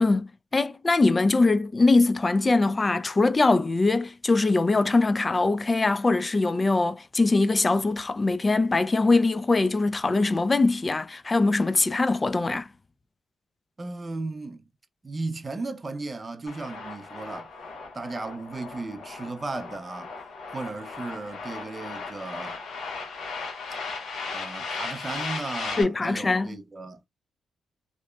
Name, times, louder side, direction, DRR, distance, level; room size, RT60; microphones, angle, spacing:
voice 1, 0.0-12.7 25.8-26.6, left 3 dB, 30° left, 0.3 m, -22 dB
voice 2, 13.8-14.6 15.0-17.5 17.9-20.1 20.5-22.6 24.3-27.1, right 3 dB, 30° right, 0.6 m, -35 dB
sound 1, 16.5-25.8, left 4 dB, 75° left, 1.1 m, -37 dB
2.9 x 2.0 x 2.3 m
cardioid pair, 65°, 0 cm